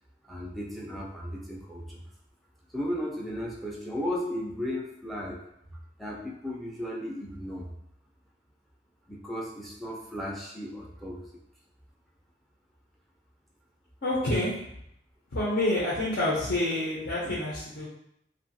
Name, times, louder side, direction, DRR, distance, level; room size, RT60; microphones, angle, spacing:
voice 1, 0.3-2.0 2.7-5.4 5.7-7.7 9.1-11.4, equal, ahead, -3 dB, 0.4 m, -35 dB
voice 2, 14.0-14.5 15.3-17.9, left 1 dB, 70° left, -8 dB, 0.7 m, -27 dB
2.7 x 2.4 x 2.6 m, 0.75 s
head